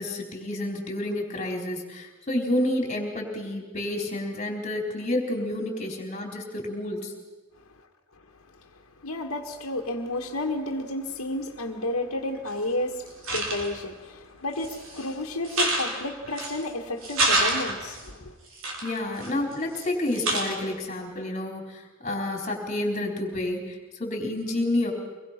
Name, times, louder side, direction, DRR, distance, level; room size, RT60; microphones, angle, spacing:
voice 1, 0.0-7.1 18.8-24.9, left 1 dB, 35° left, 4.1 m, -29 dB
voice 2, 9.0-18.3, left 2 dB, 75° left, 1.7 m, -31 dB
sound 1, 12.5-12.6 13.1-13.9 14.5-15.0 15.4-16.6 17.0-18.0 18.6-19.9 20.1-20.7, right 2 dB, 65° right, 3.9 m, -28 dB
25.0 x 21.0 x 6.0 m
head